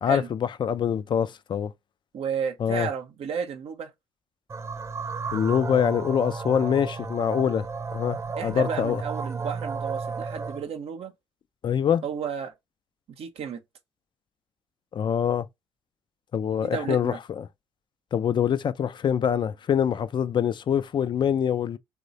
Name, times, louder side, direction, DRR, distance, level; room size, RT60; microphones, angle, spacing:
voice 1, 0.0-1.7 2.6-2.9 5.3-7.7 7.9-9.0 11.6-12.0 14.9-15.5 16.3-17.5 18.1-21.8, left 8 dB, 40° left, 0.4 m, -25 dB
voice 2, 2.1-3.9 8.4-11.1 12.0-12.5 13.2-13.6 16.6-17.2, right 7 dB, 55° right, 0.7 m, -32 dB
sound 1, 4.5-10.7, right 5 dB, 25° right, 0.4 m, -33 dB
3.0 x 2.1 x 3.9 m
hypercardioid pair, 45°, 12 cm